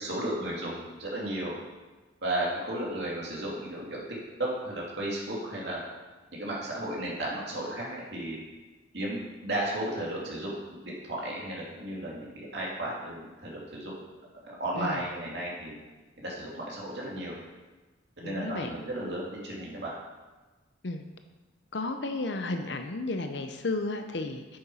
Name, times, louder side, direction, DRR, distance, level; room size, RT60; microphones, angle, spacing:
voice 1, 0.0-1.5 2.2-4.0 4.4-5.8 6.4-8.4 8.9-13.9 14.4-15.8 16.2-17.3 18.2-19.9, right 1 dB, 60° right, -4 dB, 2.7 m, -34 dB
voice 2, 18.2-18.8 20.8-21.0 21.7-24.6, left 2 dB, 65° left, 7 dB, 0.7 m, -33 dB
8.9 x 7.1 x 5.5 m, 1.2 s
head